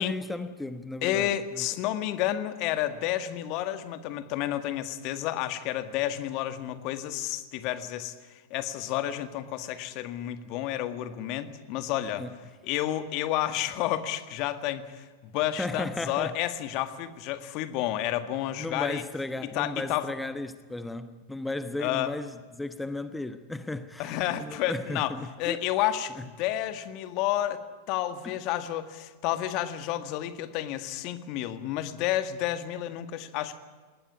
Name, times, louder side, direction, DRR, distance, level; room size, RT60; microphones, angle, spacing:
voice 1, 0.0-1.7 12.2-12.4 15.6-16.6 18.6-25.6 26.2-26.3 28.2-28.4, left 2 dB, 5° left, 1.1 m, -35 dB
voice 2, 1.0-8.2 8.5-12.2 12.6-15.1 15.3-19.0 19.5-20.1 21.8-22.1 24.0-25.1 25.4-27.6 27.9-33.6, left 13 dB, 50° left, 1.8 m, -30 dB
20.0 x 19.0 x 9.7 m
figure-of-eight pair, 90°, 0 cm